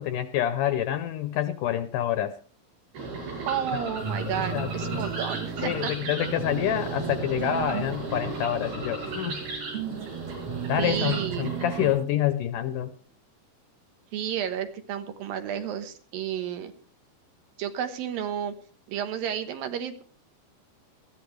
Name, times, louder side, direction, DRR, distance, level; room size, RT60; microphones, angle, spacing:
voice 1, 0.0-2.4 3.7-3.9 4.3-5.0 5.6-9.4 10.7-12.9, left 11 dB, 75° left, 10 dB, 2.0 m, -27 dB
sound 1, 2.9-11.9, right 3 dB, 90° right, 7.5 m, -36 dB
voice 2, 3.5-5.9 10.8-11.5 14.1-16.7 17.6-18.5 18.9-20.0, right 9 dB, 70° right, 8 dB, 2.9 m, -31 dB
sound 2, 4.0-12.0, right 6 dB, 50° right, 2.1 m, -35 dB
20.0 x 14.5 x 3.3 m, 0.41 s
omnidirectional pair, 4.4 m